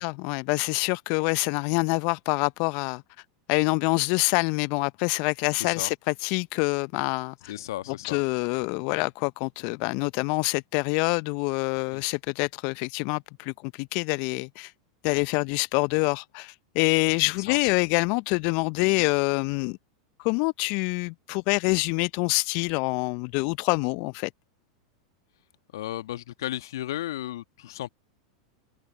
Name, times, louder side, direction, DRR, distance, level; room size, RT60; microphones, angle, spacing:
voice 1, 0.0-3.0 3.5-7.5 8.0-14.7 15.0-19.8 20.2-24.3, left 32 dB, 50° left, 0.7 m, -26 dB
voice 2, 5.6-5.9 7.5-8.2 11.9-12.0 17.5-17.6 25.7-27.9, left 14 dB, 65° left, 1.4 m, -34 dB
open air
figure-of-eight pair, 90°, 2 cm